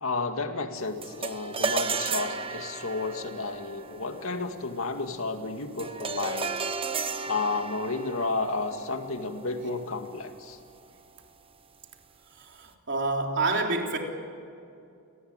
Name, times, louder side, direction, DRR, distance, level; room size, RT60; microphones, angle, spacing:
voice 1, 0.0-6.5 7.2-10.6, left 3 dB, 70° left, 6 dB, 2.1 m, -32 dB
sound 1, 1.0-10.5, right 4 dB, 25° right, 1.1 m, -35 dB
voice 2, 12.4-14.0, right 3 dB, 55° right, 2 dB, 3.5 m, -28 dB
28.5 x 19.0 x 8.9 m, 2.5 s
head